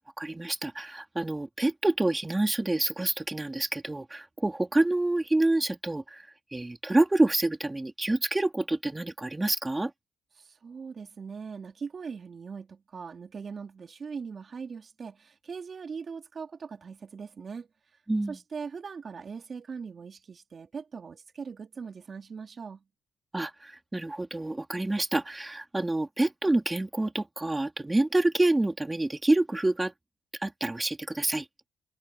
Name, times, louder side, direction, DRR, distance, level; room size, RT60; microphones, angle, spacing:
voice 1, 0.0-9.9 18.1-18.4 23.3-29.9 30.4-31.5, right 2 dB, 15° right, 3.5 m, -27 dB
voice 2, 10.4-18.0 18.3-22.8, right 5 dB, 45° right, 3.4 m, -40 dB
cardioid pair, 90°, 0 cm